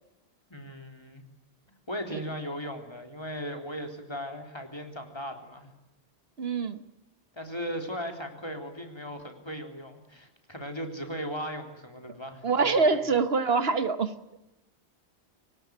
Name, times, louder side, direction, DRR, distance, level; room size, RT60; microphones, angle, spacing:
voice 1, 0.5-1.2 1.9-5.7 7.3-13.0, equal, 25° left, 4 dB, 3.7 m, -37 dB
voice 2, 6.4-6.8 12.4-14.1, right 4 dB, 70° right, 11 dB, 1.5 m, -25 dB
25.0 x 18.5 x 9.4 m, 0.95 s
omnidirectional pair, 1.1 m